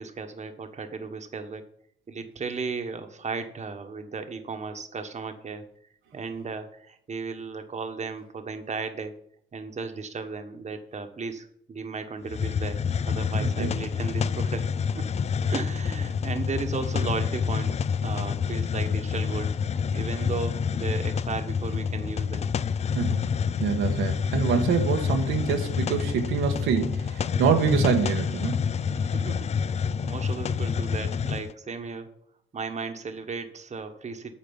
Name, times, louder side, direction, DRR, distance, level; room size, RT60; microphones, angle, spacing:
voice 1, 0.0-1.6 2.1-5.7 6.1-9.1 9.5-12.8 13.1-14.6 14.9-15.1 15.5-19.5 19.9-22.5 28.9-32.1 32.5-34.3, right 4 dB, 35° right, 1.3 m, -35 dB
Hiss, 12.3-31.5, left 6 dB, 35° left, 0.4 m, -28 dB
voice 2, 13.4-13.8 22.9-23.3 23.6-28.6, right 6 dB, 85° right, 1.3 m, -25 dB
8.6 x 5.1 x 7.1 m
cardioid pair, 90°, 20 cm